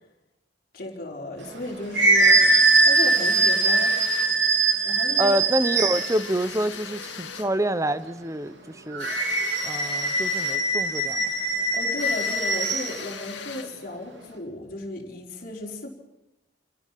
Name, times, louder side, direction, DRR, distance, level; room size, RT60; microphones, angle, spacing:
voice 1, 0.7-2.4 2.8-3.9 4.8-5.4 11.7-15.9, left 1 dB, 50° left, -1 dB, 4.4 m, -34 dB
sound 1, 1.5-6.2 8.9-12.9, right 2 dB, 80° right, 3.3 m, -21 dB
sound 2, 2.9-4.4 5.9-7.6 9.0-10.7 12.0-13.8, left 6 dB, 80° left, 2.5 m, -39 dB
voice 2, 5.2-9.1 9.6-11.3, right 1 dB, 15° right, 13 dB, 0.9 m, -27 dB
27.5 x 17.0 x 5.9 m, 0.91 s
head